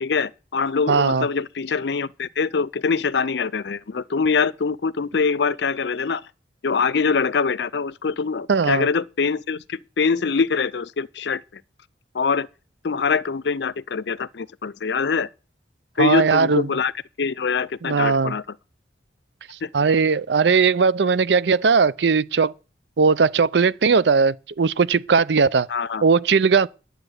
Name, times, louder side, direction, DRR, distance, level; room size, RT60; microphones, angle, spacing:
voice 1, 0.0-6.2 6.6-11.6 12.1-12.5 12.8-15.3 16.0-16.9 17.2-18.4 19.6-19.7 25.7-26.0, left 5 dB, 70° left, 0.5 m, -24 dB
voice 2, 0.9-1.3 8.5-8.9 16.0-16.7 17.8-18.3 19.7-22.5 23.0-25.7 26.0-26.7, right 5 dB, 70° right, 0.5 m, -18 dB
11.0 x 7.9 x 7.9 m
head